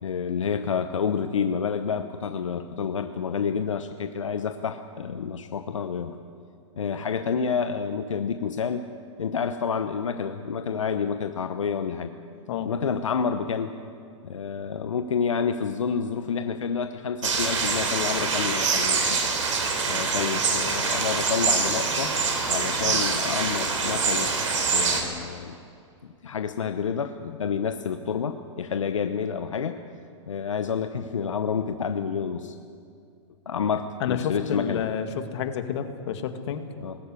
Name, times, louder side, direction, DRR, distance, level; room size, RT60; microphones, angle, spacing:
voice 1, 0.0-6.2 6.8-8.9 9.2-12.1 12.6-13.8 14.2-19.2 19.9-22.2 22.5-24.3 24.7-25.6 26.0-29.8 30.3-32.6 33.5-34.8 36.8-37.0, left 6 dB, 85° left, 8 dB, 0.9 m, -29 dB
sound 1, 17.2-25.0, right 4 dB, 80° right, 3.9 m, -25 dB
voice 2, 34.0-36.6, left 8 dB, 65° left, 7 dB, 2.0 m, -30 dB
19.0 x 15.0 x 9.6 m, 2.4 s
hypercardioid pair, 115°, 16 cm